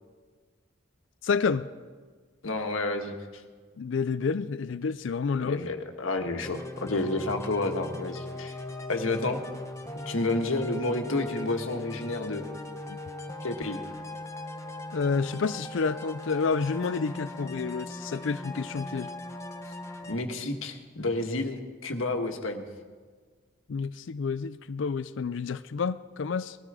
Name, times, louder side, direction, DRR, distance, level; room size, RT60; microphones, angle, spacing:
voice 1, 1.2-1.7 3.8-5.6 12.9-13.0 14.9-19.1 23.7-26.6, left 5 dB, 65° left, 14 dB, 0.4 m, -29 dB
voice 2, 2.4-3.2 5.4-8.5 8.9-9.4 10.0-12.4 13.4-13.8 20.1-22.6, left 2 dB, 85° left, 4 dB, 1.5 m, -30 dB
sound 1, 6.4-20.1, left 1 dB, 15° left, 1.2 m, -39 dB
20.0 x 13.0 x 4.9 m, 1.5 s
head